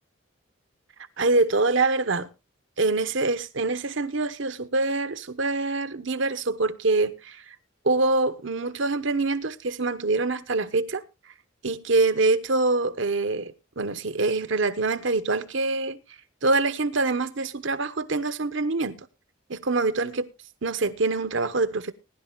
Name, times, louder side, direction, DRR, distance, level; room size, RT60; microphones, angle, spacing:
voice 1, 1.2-2.3 2.8-7.4 7.8-11.0 11.6-16.0 16.4-19.1 19.5-20.3 20.6-21.9, right 3 dB, 65° right, 0.9 m, -25 dB
20.5 x 11.0 x 2.3 m
head